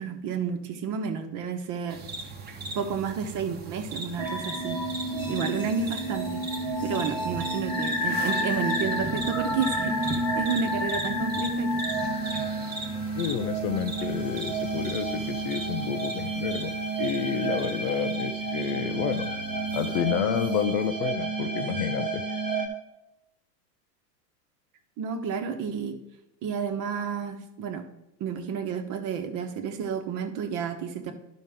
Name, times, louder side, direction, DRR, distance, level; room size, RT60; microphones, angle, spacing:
voice 1, 0.0-2.0 2.7-4.8 5.3-6.4 6.8-11.7 25.0-26.0 26.4-27.8 28.2-31.1, right 6 dB, 40° right, 6 dB, 1.2 m, -31 dB
sound 1, 1.9-20.0, right 2 dB, 20° right, 1.2 m, -39 dB
sound 2, 4.2-22.7, right 1 dB, 10° left, 1.3 m, -30 dB
voice 2, 13.2-16.7 17.0-19.3 19.7-22.2, left 9 dB, 40° left, 9 dB, 0.5 m, -30 dB
11.0 x 5.7 x 3.6 m, 0.88 s
hypercardioid pair, 120°, 49 cm